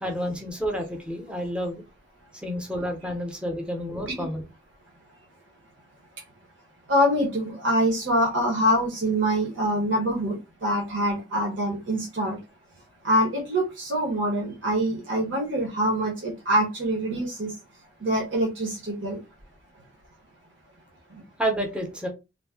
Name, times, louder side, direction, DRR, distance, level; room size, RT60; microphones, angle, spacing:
voice 1, 0.0-1.8 2.4-4.4 21.4-22.1, equal, 5° right, 0.6 m, -29 dB
voice 2, 6.9-12.4 13.0-17.5 18.0-19.2 21.1-21.2, equal, 70° right, 0.9 m, -25 dB
2.6 x 2.1 x 3.4 m
head